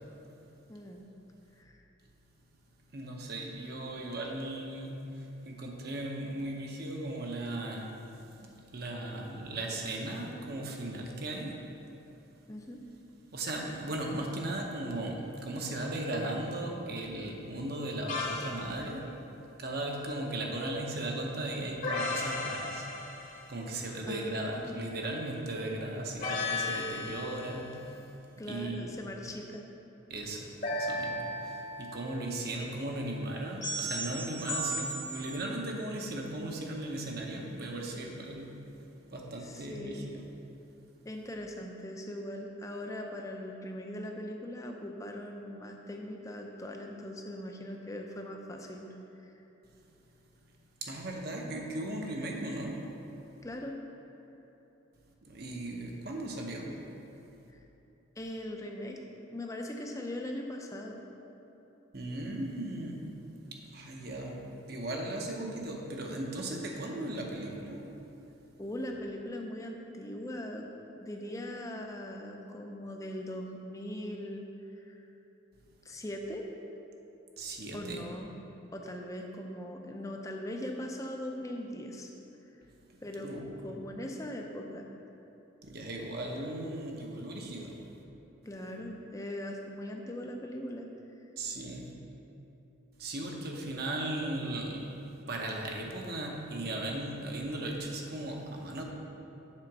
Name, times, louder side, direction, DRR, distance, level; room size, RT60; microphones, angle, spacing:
voice 1, 0.7-1.1 1.6-1.7 12.5-12.8 24.1-24.7 28.4-29.6 39.4-40.1 41.1-48.9 49.2-49.3 53.4-53.8 57.5-57.6 58.2-59.0 59.3-61.0 68.6-70.7 70.9-74.5 74.8-75.0 75.8-76.5 77.7-78.3 78.7-82.1 83.0-83.3 83.6-84.9 88.4-90.9, left 1 dB, 15° left, 2 dB, 0.5 m, -40 dB
voice 2, 2.9-7.9 8.4-11.6 13.3-19.0 19.6-22.9 23.2-28.0 28.5-28.9 30.1-38.5 39.1-40.3 50.8-52.9 55.3-56.7 61.9-63.1 63.5-67.9 77.4-78.0 83.2-83.8 85.6-87.8 91.4-91.9 93.0-94.9 95.3-98.8, right 1 dB, 50° right, 0 dB, 0.8 m, -37 dB
sound 1, 18.1-18.6 21.8-23.5 26.2-27.6 30.6-32.1 33.6-35.3, left 1 dB, 40° left, 1.1 m, -35 dB
7.5 x 4.3 x 6.1 m, 3.0 s
head